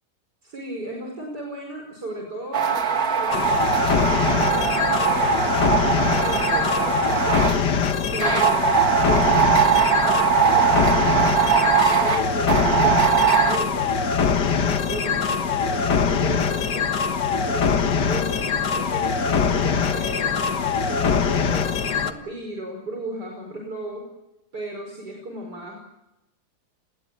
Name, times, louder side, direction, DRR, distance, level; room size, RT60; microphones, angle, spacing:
voice 1, 0.4-7.4 8.1-8.8 9.1-13.9 14.2-16.9 17.2-18.5 18.7-21.7 22.0-24.1 24.5-25.7, right 1 dB, 75° right, 1 dB, 5.7 m, -35 dB
sound 1, 2.5-7.6 8.2-13.6, right 8 dB, 60° right, 2.3 m, -21 dB
sound 2, 3.3-22.1, left 6 dB, 90° left, 2.1 m, -23 dB
30.0 x 20.5 x 7.5 m, 0.95 s
omnidirectional pair, 1.8 m